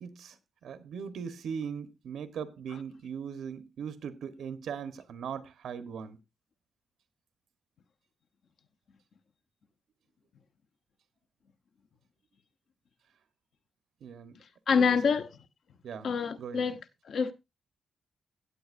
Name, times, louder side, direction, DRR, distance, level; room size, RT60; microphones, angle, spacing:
voice 1, 0.0-0.4 0.6-6.2 14.0-14.4 14.7-15.1 15.8-16.1 16.4-16.7, right 7 dB, 85° right, 1.1 m, -39 dB
voice 2, 14.7-15.3 16.0-16.8 17.1-17.3, left 6 dB, 60° left, 0.9 m, -26 dB
16.5 x 8.2 x 2.6 m
wide cardioid pair, 170°, 0 cm